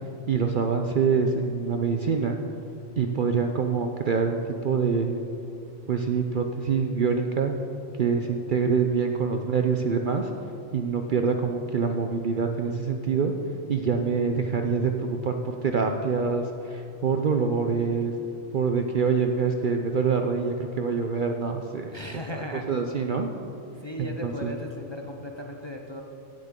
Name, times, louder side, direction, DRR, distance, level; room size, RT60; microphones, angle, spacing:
voice 1, 0.3-2.4 3.0-5.2 5.9-7.6 8.0-10.3 10.7-13.3 13.7-18.1 18.5-21.9 22.4-23.3 24.0-24.6, right 5 dB, 55° right, 4 dB, 0.6 m, -25 dB
voice 2, 21.9-22.6 23.8-26.0, left 1 dB, 30° left, 2 dB, 0.5 m, -36 dB
16.0 x 7.7 x 3.7 m, 2.9 s
omnidirectional pair, 1.3 m